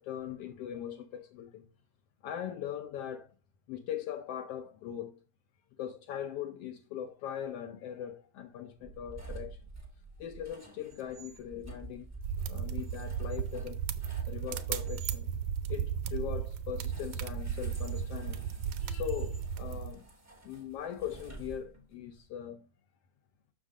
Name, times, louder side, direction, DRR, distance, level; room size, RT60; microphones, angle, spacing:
voice 1, 0.0-1.6 2.2-3.3 3.7-5.2 5.8-9.6 10.2-12.1 12.5-13.9 14.3-15.3 15.7-18.5 18.8-20.1 20.4-22.7, left 10 dB, 80° left, 1.3 m, -40 dB
sound 1, 8.8-15.2 16.8-22.0, right 3 dB, 15° right, 0.5 m, -49 dB
sound 2, 12.2-19.9, right 8 dB, 75° right, 1.9 m, -35 dB
7.5 x 6.4 x 3.6 m
omnidirectional pair, 3.6 m